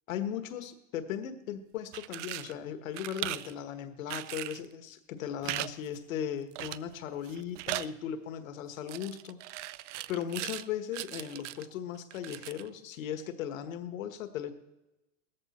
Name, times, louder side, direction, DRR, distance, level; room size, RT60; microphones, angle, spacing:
voice 1, 0.1-9.4 10.1-14.5, left 9 dB, 75° left, 9 dB, 1.5 m, -37 dB
sound 1, 1.8-2.5 2.9-3.5 4.1-4.7 5.4-5.7 6.0-6.1 6.6-6.9 7.2-7.9 8.9-10.7 10.9-11.7 12.1-12.7, right 15 dB, 65° right, 0.5 m, -38 dB
17.5 x 14.0 x 4.3 m, 0.98 s
supercardioid pair, 155°, 40 cm